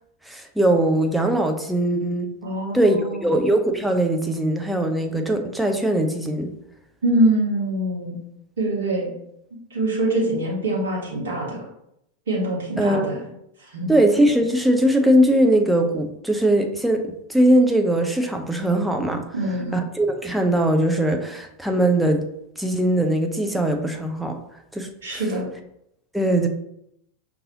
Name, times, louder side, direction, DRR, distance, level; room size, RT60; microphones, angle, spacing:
voice 1, 0.3-2.3 2.7-6.5 12.8-13.3 13.9-19.2 19.7-22.3 22.6-24.4 24.7-25.2 26.1-26.5, right 1 dB, ahead, 3 dB, 0.5 m, -20 dB
voice 2, 2.4-3.4 7.0-8.2 8.6-9.1 9.7-11.6 12.3-13.2 13.6-13.9 19.3-19.8 25.0-25.5, right 1 dB, 60° right, -4 dB, 1.1 m, -24 dB
5.3 x 2.7 x 2.7 m, 0.78 s
figure-of-eight pair, 90°, 0 cm